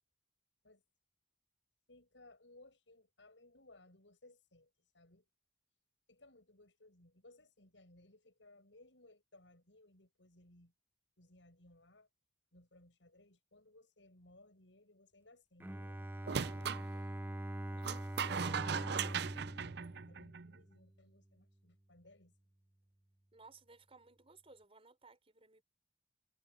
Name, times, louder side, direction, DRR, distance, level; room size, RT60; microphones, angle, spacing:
voice 1, 1.9-5.3 6.1-10.7 11.2-12.1 12.5-17.4 17.7-17.9 18.3-22.3, left 2 dB, 85° left, 7.6 m, -63 dB
Bowed string instrument, 15.6-20.9, right 1 dB, 10° right, 0.6 m, -43 dB
sound 1, 16.3-16.8 17.8-20.5, right 7 dB, 65° right, 0.6 m, -38 dB
voice 2, 23.3-25.6, right 3 dB, 35° right, 4.8 m, -60 dB
head